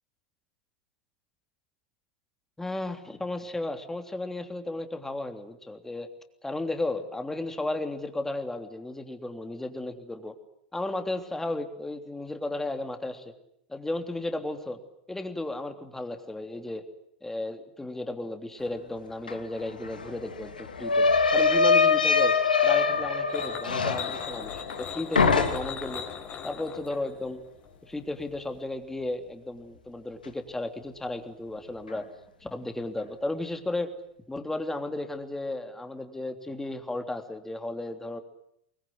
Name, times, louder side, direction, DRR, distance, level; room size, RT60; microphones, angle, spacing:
voice 1, 2.6-6.1 6.4-10.3 10.7-13.3 13.7-14.8 15.1-16.8 17.2-21.1 21.3-22.3 22.6-26.0 26.4-27.4 27.8-32.1 32.4-33.9 34.3-38.2, left 2 dB, 10° left, 6 dB, 3.2 m, -34 dB
sound 1, 19.3-19.4 19.6-24.9 25.2-25.9, left 5 dB, 90° left, 2.7 m, -23 dB
sound 2, 23.3-28.6, left 7 dB, 35° left, 4.6 m, -40 dB
25.5 x 21.0 x 9.6 m, 0.74 s
hypercardioid pair, 90°, 5 cm